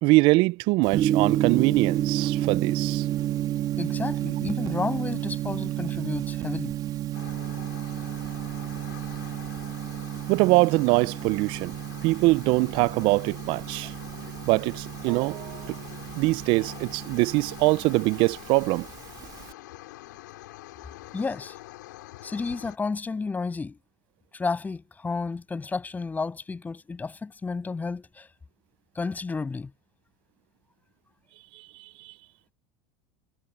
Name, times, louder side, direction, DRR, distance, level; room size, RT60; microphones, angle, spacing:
voice 1, 0.0-3.0 10.3-11.7 12.0-13.9 14.5-15.8 16.2-18.9, right 23 dB, 55° right, 0.5 m, -23 dB
Gong, 0.9-19.5, right 12 dB, 40° right, 2.8 m, -31 dB
voice 2, 3.8-6.7 21.1-21.6 22.2-23.8 24.3-28.3 29.0-29.7, left 4 dB, 15° left, 7.0 m, -31 dB
sound 1, 7.1-22.8, left 18 dB, 80° left, 6.7 m, -45 dB
supercardioid pair, 110°, 10 cm